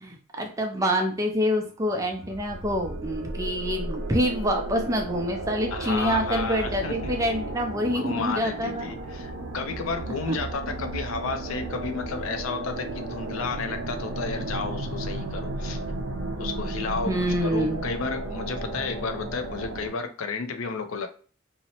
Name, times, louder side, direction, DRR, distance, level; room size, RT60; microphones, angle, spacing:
voice 1, 0.0-8.9 10.3-10.4 17.1-17.8, equal, 15° right, 3 dB, 0.3 m, -26 dB
sound 1, 1.9-19.9, right 2 dB, 80° right, 0.4 m, -34 dB
voice 2, 5.7-7.2 7.8-15.8 16.4-21.1, left 4 dB, 80° left, 7 dB, 0.4 m, -32 dB
2.7 x 2.0 x 2.8 m, 0.41 s
head